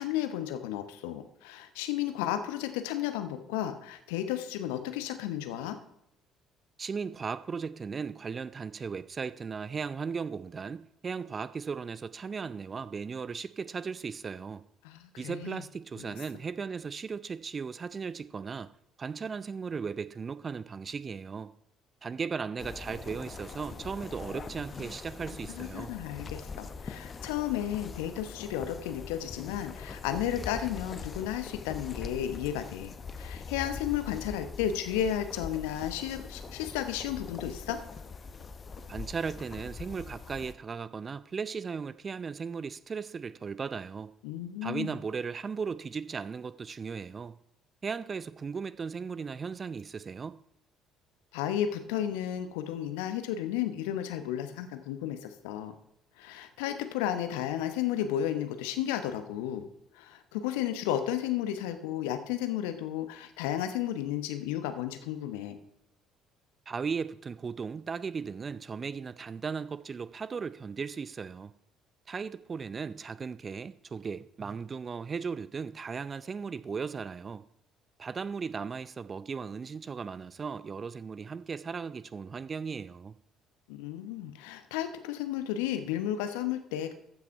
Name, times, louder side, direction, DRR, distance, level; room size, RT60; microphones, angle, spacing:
voice 1, 0.0-5.8 14.8-15.6 25.6-37.8 44.2-44.9 51.3-55.7 56.2-59.7 59.9-65.6 83.7-86.9, left 11 dB, 70° left, 0.9 m, -33 dB
voice 2, 6.8-14.6 15.2-18.7 19.0-21.5 22.0-25.9 38.9-44.1 44.6-47.4 47.8-50.4 66.7-71.5 72.1-77.4 78.0-83.2, right 5 dB, 35° right, 0.5 m, -37 dB
sound 1, 22.6-40.5, left 5 dB, 35° left, 0.8 m, -42 dB
14.5 x 6.0 x 4.6 m
figure-of-eight pair, 50°, 0 cm